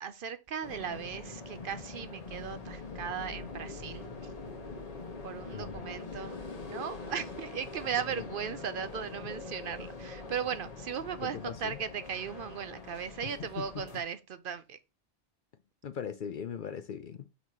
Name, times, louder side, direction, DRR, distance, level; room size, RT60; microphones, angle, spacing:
voice 1, 0.0-4.0 5.2-6.4 6.6-14.8, right 7 dB, 60° right, 0.7 m, -37 dB
sound 1, 0.6-14.0, left 3 dB, 35° left, 1.0 m, -43 dB
voice 2, 5.5-6.2 8.2-8.3 11.2-11.8 13.2-13.8 15.8-17.3, left 7 dB, 60° left, 0.6 m, -40 dB
4.6 x 4.1 x 5.3 m
omnidirectional pair, 1.2 m